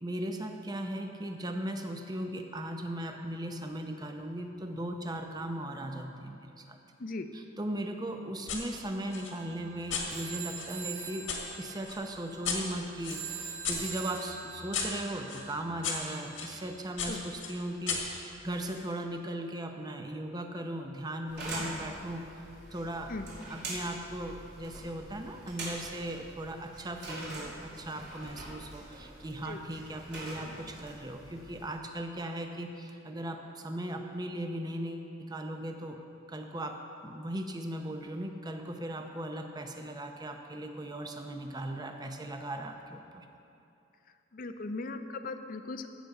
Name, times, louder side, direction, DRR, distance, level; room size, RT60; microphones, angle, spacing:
voice 1, 0.0-6.8 7.3-23.1 23.4-36.0 36.3-43.3, right 1 dB, 20° right, 5 dB, 0.7 m, -38 dB
sound 1, 8.5-8.6 9.1-11.4 11.9-16.5 17.0-18.9, left 5 dB, 80° left, 1.8 m, -37 dB
sound 2, 9.0-17.1, right 7 dB, 85° right, 2.4 m, -44 dB
sound 3, 21.3-31.7, right 1 dB, 60° right, 3.0 m, -44 dB
voice 2, 44.3-45.9, left 3 dB, 45° left, 8 dB, 0.5 m, -38 dB
15.5 x 6.7 x 4.8 m, 2.7 s
head